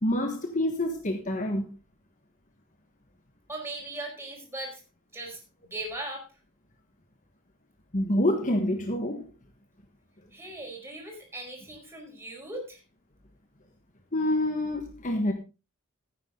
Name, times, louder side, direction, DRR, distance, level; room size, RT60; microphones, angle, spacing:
voice 1, 0.0-1.7 7.9-9.3 14.1-15.3, left 1 dB, 35° left, 1.4 m, -27 dB
voice 2, 3.5-4.8 5.1-6.3 10.3-12.8, right 2 dB, 10° right, 4.7 m, -39 dB
14.5 x 9.5 x 3.8 m
head